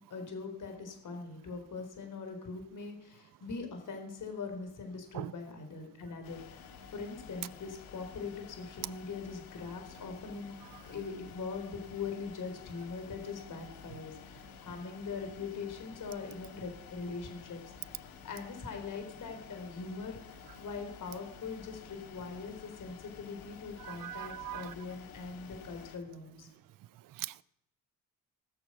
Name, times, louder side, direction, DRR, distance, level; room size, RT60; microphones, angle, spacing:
voice 1, 0.1-10.5 10.9-17.9 18.2-26.5, left 4 dB, 60° left, 4.1 m, -42 dB
sound 1, 6.2-26.0, left 7 dB, 85° left, 1.7 m, -52 dB
voice 2, 23.8-24.7 27.2-27.4, right 14 dB, 65° right, 0.6 m, -40 dB
18.0 x 7.1 x 6.3 m
cardioid pair, 80°, 35 cm